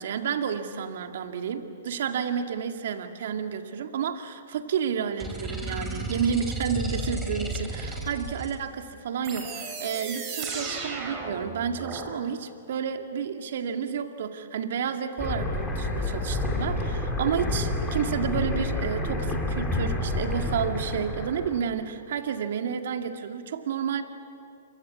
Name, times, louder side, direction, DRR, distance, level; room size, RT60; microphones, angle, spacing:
voice 1, 0.0-24.0, right 7 dB, 65° right, 6 dB, 2.2 m, -30 dB
sound 1, 5.2-8.6, right 1 dB, 10° right, 4.3 m, -33 dB
sound 2, 9.2-12.1, right 4 dB, 30° right, 6.5 m, -35 dB
sound 3, 15.2-21.6, left 2 dB, 10° left, 4.8 m, -29 dB
28.5 x 24.0 x 8.4 m, 2.5 s
hypercardioid pair, 130°, 0 cm